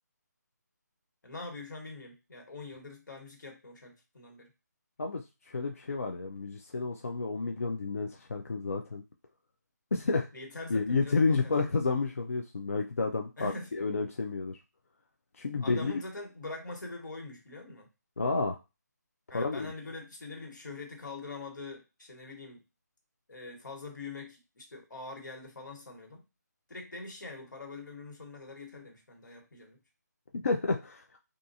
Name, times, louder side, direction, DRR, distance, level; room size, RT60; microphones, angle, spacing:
voice 1, 1.2-4.5 10.3-11.5 13.4-13.7 15.6-17.9 19.3-22.6 23.3-26.3 26.7-29.8, left 3 dB, 85° left, 2 dB, 1.4 m, -43 dB
voice 2, 5.0-9.0 9.9-10.3 10.7-14.6 15.4-15.9 18.2-18.6 19.3-19.7 30.4-31.0, left 4 dB, 50° left, 3 dB, 0.3 m, -30 dB
2.4 x 2.4 x 2.6 m, 0.27 s
hypercardioid pair, 175°, 10 cm